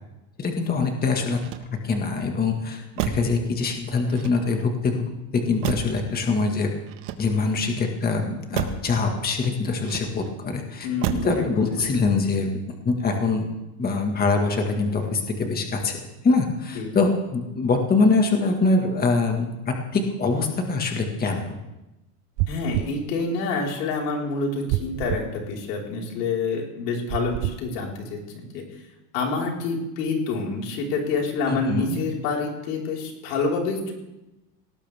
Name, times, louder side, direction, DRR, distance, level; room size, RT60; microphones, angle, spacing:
voice 1, 0.4-1.4 1.8-6.7 7.2-10.9 11.1-12.5 12.9-13.5 13.8-16.0 16.2-21.6 31.5-32.0, left 4 dB, 20° left, 3 dB, 1.8 m, -24 dB
Motor vehicle (road), 1.3-2.1 2.9-3.4 4.1-4.8 5.6-6.1 6.9-7.6 8.5-8.9 9.8-10.4 11.0-11.4 11.8-12.2, right 10 dB, 65° right, 1.6 m, -31 dB
voice 2, 10.8-11.4 11.7-11.8 16.7-16.9 22.5-28.6 29.1-33.9, left 3 dB, 80° left, -1 dB, 4.8 m, -27 dB
sound 1, 22.4-23.0 24.7-25.3 27.1-27.6, right 16 dB, 45° right, 0.5 m, -27 dB
19.0 x 18.0 x 3.6 m, 0.97 s
supercardioid pair, 140°, 46 cm